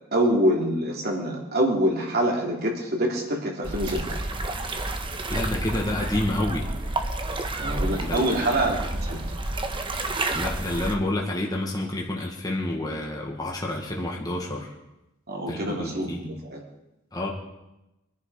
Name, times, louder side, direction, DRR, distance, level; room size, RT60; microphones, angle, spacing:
voice 1, 0.1-4.0 7.6-9.2 15.3-16.6, right 1 dB, 50° right, 0 dB, 3.3 m, -25 dB
sound 1, 3.6-11.0, right 2 dB, 25° right, 1.2 m, -30 dB
voice 2, 5.3-6.7 8.0-8.6 10.3-14.7 15.5-16.2 17.1-17.3, left 1 dB, 20° left, -2 dB, 1.9 m, -29 dB
23.5 x 10.5 x 5.0 m, 0.96 s
head